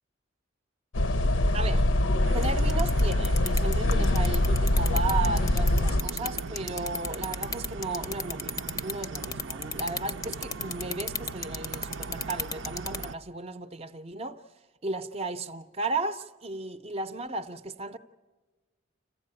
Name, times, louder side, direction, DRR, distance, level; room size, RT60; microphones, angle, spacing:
sound 1, 0.9-6.0, left 1 dB, 85° left, 0.7 m, -24 dB
voice 1, 1.5-1.9 2.3-14.4 14.8-18.0, right 3 dB, 30° right, 0.6 m, -35 dB
sound 2, 2.2-13.1, right 4 dB, 80° right, 0.6 m, -39 dB
sound 3, 2.4-13.0, left 4 dB, 20° left, 0.6 m, -32 dB
26.5 x 15.5 x 8.7 m
head